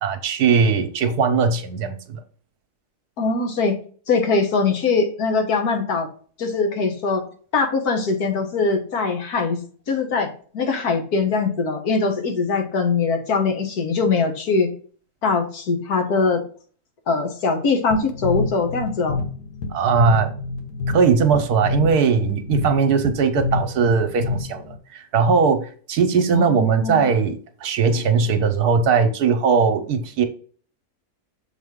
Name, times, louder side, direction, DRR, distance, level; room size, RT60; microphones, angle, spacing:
voice 1, 0.0-2.2 19.7-20.3 20.9-30.2, right 5 dB, 75° right, 8 dB, 1.3 m, -19 dB
voice 2, 3.2-3.8 4.1-6.1 6.4-7.3 7.5-9.6 9.9-10.3 10.5-14.7 15.2-16.4 17.1-19.2 26.3-27.1, left 4 dB, 70° left, 5 dB, 1.7 m, -22 dB
sound 1, 17.9-24.8, left 3 dB, 85° left, 1.9 m, -28 dB
6.9 x 4.2 x 3.6 m, 0.43 s
omnidirectional pair, 1.7 m